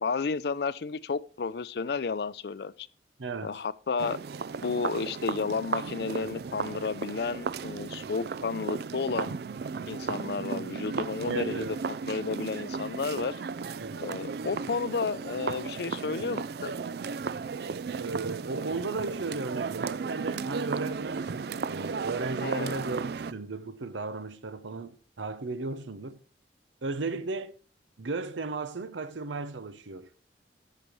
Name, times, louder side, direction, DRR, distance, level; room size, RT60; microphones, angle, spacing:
voice 1, 0.0-2.9 3.4-4.2 4.6-9.4 9.9-13.4 14.0-16.7 22.4-22.8, left 4 dB, 60° left, 0.4 m, -32 dB
voice 2, 3.2-3.6 11.3-11.8 13.8-14.0 18.0-26.2 26.8-27.6 28.0-30.1, right 3 dB, 90° right, 0.8 m, -35 dB
sound 1, 4.0-23.3, right 5 dB, 55° right, 0.3 m, -35 dB
14.0 x 6.7 x 3.1 m
head